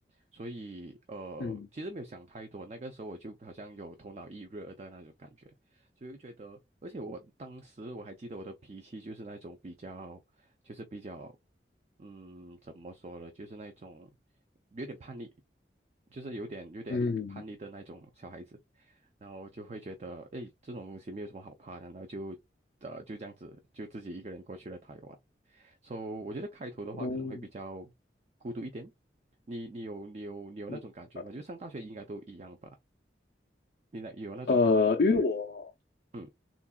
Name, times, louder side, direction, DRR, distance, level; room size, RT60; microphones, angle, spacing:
voice 1, 0.3-5.3 5.7-11.3 12.0-14.1 14.7-15.3 16.1-22.4 22.8-25.2 25.5-27.9 28.4-28.9 29.5-32.7 33.9-34.7 36.1-36.3, right 2 dB, 40° right, 0.4 m, -43 dB
voice 2, 16.9-17.4 27.0-27.4 30.7-30.8 34.5-35.7, left 3 dB, 60° left, 0.4 m, -27 dB
3.8 x 2.3 x 2.2 m
head